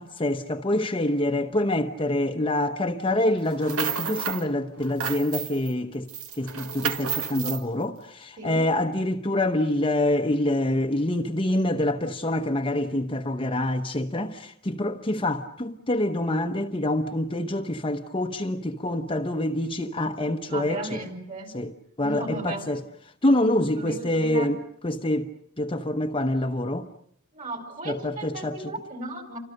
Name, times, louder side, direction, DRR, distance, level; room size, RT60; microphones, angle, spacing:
voice 1, 0.0-6.1 6.4-21.0 21.5-21.7 22.0-22.8 23.2-25.3 25.6-26.9 27.8-28.6, left 1 dB, 25° left, 1.0 m, -26 dB
sound 1, 3.5-4.5 4.8-5.7 6.1-7.6, right 7 dB, 70° right, 2.1 m, -31 dB
voice 2, 8.4-8.7 20.5-21.5 22.0-22.7 23.7-24.5 27.3-29.4, right 2 dB, 35° right, 4.8 m, -35 dB
29.5 x 25.5 x 6.6 m
head